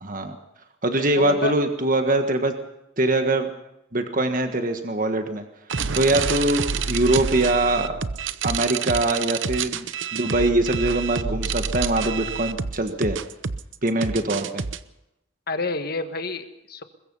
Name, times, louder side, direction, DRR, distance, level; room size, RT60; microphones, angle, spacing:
voice 1, 0.0-0.4 0.8-2.5 3.0-3.5 3.9-5.4 5.9-8.0 8.4-9.9 10.1-13.2 13.8-14.6, right 2 dB, 40° right, 6 dB, 1.5 m, -23 dB
voice 2, 1.2-1.5 6.2-6.4 15.5-16.8, left 3 dB, 50° left, 8 dB, 1.5 m, -28 dB
sound 1, 5.7-14.8, right 5 dB, 65° right, 0.8 m, -28 dB
22.0 x 21.5 x 5.6 m, 0.85 s
head